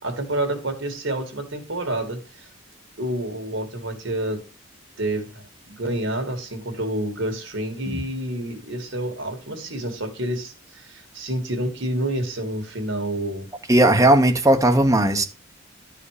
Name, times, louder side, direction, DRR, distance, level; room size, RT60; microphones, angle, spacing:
voice 1, 0.0-2.5 3.0-4.4 5.0-13.5, right 1 dB, 70° right, 2.2 m, -28 dB
voice 2, 13.7-15.2, right 1 dB, 15° right, 1.1 m, -17 dB
11.5 x 5.0 x 4.9 m
head